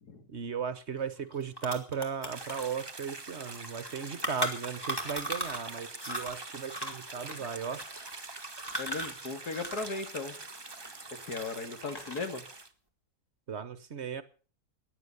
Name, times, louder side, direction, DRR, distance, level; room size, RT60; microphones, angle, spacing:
voice 1, 0.3-7.8 13.5-14.2, right 6 dB, 50° right, 1.2 m, -36 dB
sound 1, 1.0-1.1 1.3-5.7 6.0-10.0 10.3-11.4 11.8-12.4, equal, 15° left, 2.9 m, -37 dB
sound 2, 2.3-12.7, right 3 dB, 20° right, 1.1 m, -45 dB
voice 2, 8.8-10.4 11.3-12.4, left 3 dB, 85° left, 2.6 m, -37 dB
16.0 x 10.5 x 6.8 m
omnidirectional pair, 1.6 m